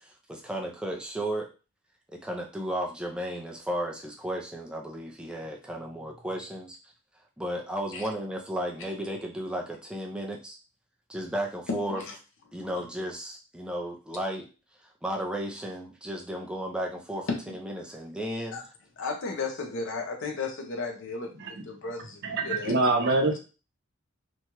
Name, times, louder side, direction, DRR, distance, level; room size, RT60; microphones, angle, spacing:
voice 1, 0.0-1.5 2.1-6.8 7.4-10.6 11.1-12.0 12.5-14.5 15.0-18.6, right 1 dB, 5° right, 0 dB, 0.5 m, -34 dB
voice 2, 11.7-12.2 17.3-17.6 18.5-18.6 19.0-22.8 23.3-23.4, left 4 dB, 60° left, 3 dB, 0.7 m, -34 dB
voice 3, 22.2-23.4, right 2 dB, 55° right, 3 dB, 0.7 m, -24 dB
3.0 x 2.3 x 2.9 m, 0.33 s
head